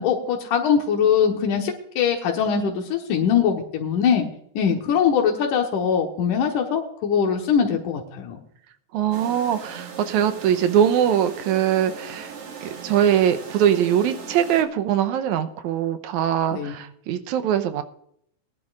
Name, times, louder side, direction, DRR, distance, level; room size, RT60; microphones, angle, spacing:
voice 1, 0.0-4.3 4.6-8.4 16.5-16.8, left 7 dB, 80° left, 2 dB, 2.8 m, -22 dB
voice 2, 8.9-12.3 12.6-17.8, right 9 dB, 75° right, 9 dB, 2.1 m, -22 dB
sound 1, 9.1-14.6, right 5 dB, 50° right, 2.3 m, -39 dB
20.0 x 11.0 x 2.5 m, 0.69 s
omnidirectional pair, 3.6 m